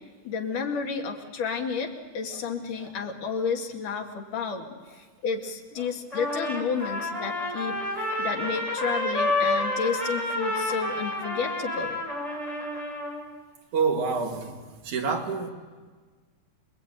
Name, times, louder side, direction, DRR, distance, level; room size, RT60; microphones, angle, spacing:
voice 1, 0.3-1.9 2.2-7.8 8.2-12.0, left 5 dB, 90° left, 2 dB, 3.7 m, -31 dB
Trumpet, 6.1-13.2, left 1 dB, 10° left, 5.2 m, -29 dB
voice 2, 13.7-14.6 14.8-15.5, right 5 dB, 70° right, 2 dB, 3.9 m, -27 dB
27.5 x 21.0 x 9.1 m, 1.4 s
omnidirectional pair, 3.6 m